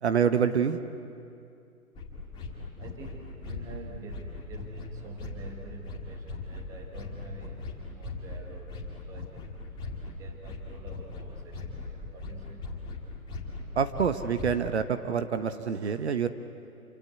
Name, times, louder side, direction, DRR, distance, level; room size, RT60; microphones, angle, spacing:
voice 1, 0.0-0.8 13.7-16.3, right 7 dB, 45° right, 9 dB, 1.2 m, -26 dB
sound 1, 1.9-14.7, left 3 dB, 10° left, 2.4 m, -40 dB
voice 2, 2.8-12.7, right 2 dB, 5° right, 3 dB, 1.2 m, -46 dB
28.0 x 25.5 x 8.2 m, 2.4 s
figure-of-eight pair, 145°, 44 cm